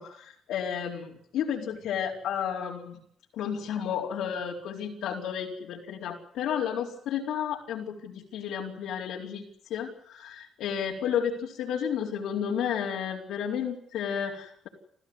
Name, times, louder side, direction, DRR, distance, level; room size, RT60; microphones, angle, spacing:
voice 1, 0.0-3.0 3.3-9.4 9.7-14.7, left 8 dB, 85° left, -3 dB, 4.3 m, -32 dB
29.0 x 15.0 x 9.8 m, 0.68 s
cardioid pair, 90°, 0 cm